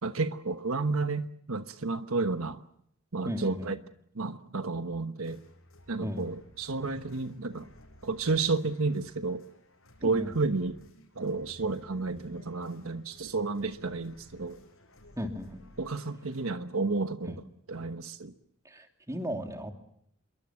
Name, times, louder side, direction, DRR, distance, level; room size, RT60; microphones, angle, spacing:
voice 1, 0.0-2.6 3.1-3.8 4.1-5.4 5.9-7.7 8.0-9.4 10.0-10.7 11.1-14.6 15.8-17.4 17.7-18.3, right 3 dB, 80° right, 1.2 m, -31 dB
voice 2, 3.2-3.8 6.0-6.2 10.0-10.3 15.2-15.6 17.3-17.4 18.6-19.7, equal, 15° right, 2.9 m, -36 dB
sound 1, 5.2-16.5, left 1 dB, 75° left, 6.7 m, -56 dB
26.5 x 23.0 x 7.6 m
head